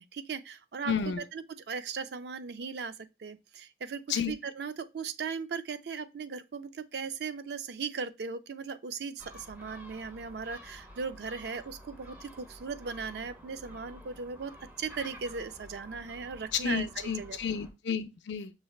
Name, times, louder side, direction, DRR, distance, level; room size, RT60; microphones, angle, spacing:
voice 1, 0.0-14.5 14.8-17.4, right 5 dB, 60° right, 0.4 m, -38 dB
voice 2, 0.8-1.2 4.1-4.3 16.6-18.5, left 7 dB, 70° left, 0.5 m, -31 dB
Gull seagull, 9.2-17.7, equal, 10° right, 0.8 m, -50 dB
6.0 x 3.2 x 2.3 m
head